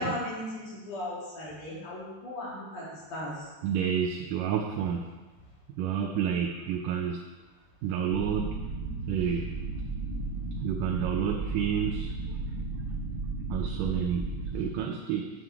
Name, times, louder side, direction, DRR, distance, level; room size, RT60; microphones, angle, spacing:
voice 1, 0.0-3.5, left 1 dB, 70° left, -7 dB, 4.0 m, -36 dB
voice 2, 3.6-5.1 5.7-7.2 7.8-8.6 9.1-9.5 10.6-12.4 13.5-15.3, right 8 dB, 80° right, 1 dB, 2.2 m, -30 dB
sound 1, 8.1-14.7, right 3 dB, 55° right, 2.3 m, -34 dB
9.1 x 7.0 x 3.4 m, 1.2 s
omnidirectional pair, 3.7 m